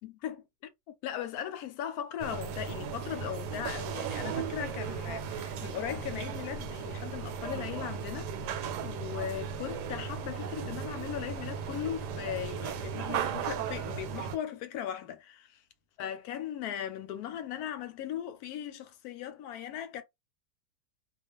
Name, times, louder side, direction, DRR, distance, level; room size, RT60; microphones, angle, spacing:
voice 1, 0.0-0.4 0.9-15.6 16.0-20.0, left 10 dB, 70° left, 1.0 m, -38 dB
sound 1, 2.2-14.4, right 7 dB, 85° right, 1.2 m, -36 dB
2.5 x 2.4 x 2.9 m
omnidirectional pair, 1.7 m